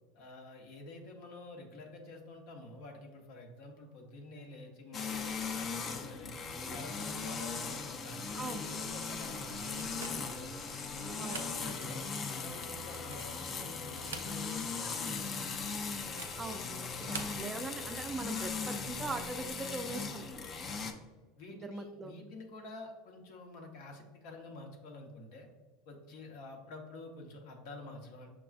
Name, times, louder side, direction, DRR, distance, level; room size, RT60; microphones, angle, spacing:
voice 1, 0.1-10.5 10.9-15.7 17.1-17.3 20.6-21.0 21.4-25.5 25.9-28.3, left 2 dB, 65° left, 2 dB, 0.8 m, -48 dB
sound 1, 4.9-20.9, left 5 dB, 35° left, 0.5 m, -39 dB
voice 2, 8.4-8.7 9.4-9.5 11.2-11.4 16.3-20.3 21.5-22.2, right 3 dB, 20° right, 7 dB, 0.4 m, -41 dB
sound 2, 9.8-10.4 11.1-11.6 12.0-12.1 12.8-13.4 13.9-14.7 15.0-15.1 16.0-16.4 16.9-17.4, right 6 dB, 90° right, 0.4 m, -46 dB
5.9 x 2.3 x 2.4 m, 1.3 s
hypercardioid pair, 95°, 0 cm